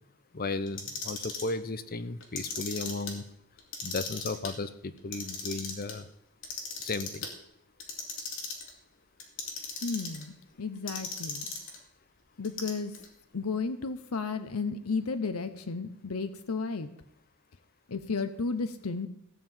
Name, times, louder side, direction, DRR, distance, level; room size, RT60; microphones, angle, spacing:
voice 1, 0.3-3.2 3.8-6.1 6.8-7.3, left 3 dB, 45° left, 13 dB, 0.7 m, -35 dB
Clock, 0.7-1.5 2.2-3.1 3.6-4.5 5.0-5.9 6.4-7.3 7.8-8.7 9.2-10.2 10.9-11.8 12.4-13.1, left 4 dB, 60° left, 2.8 m, -37 dB
voice 2, 9.8-11.5 12.4-12.9 13.3-16.9 17.9-19.1, left 4 dB, 85° left, 9 dB, 0.8 m, -33 dB
15.5 x 5.7 x 8.8 m, 0.75 s
head